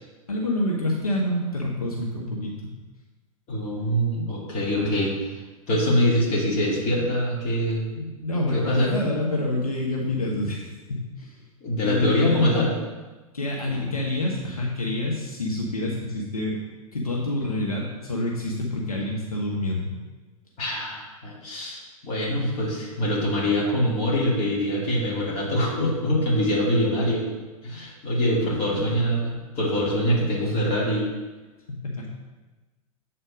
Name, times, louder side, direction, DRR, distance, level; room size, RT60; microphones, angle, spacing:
voice 1, 0.3-2.7 4.8-4.9 8.2-11.4 11.8-12.5 13.3-16.6 16.9-19.9 28.3-29.0 31.7-32.1, left 1 dB, 85° left, -3 dB, 1.3 m, -27 dB
voice 2, 3.5-5.1 5.7-8.1 8.5-9.0 11.6-12.8 20.6-27.3 27.6-31.1, equal, 35° left, -4 dB, 2.7 m, -24 dB
7.9 x 4.3 x 5.1 m, 1.2 s
figure-of-eight pair, 105°, 19 cm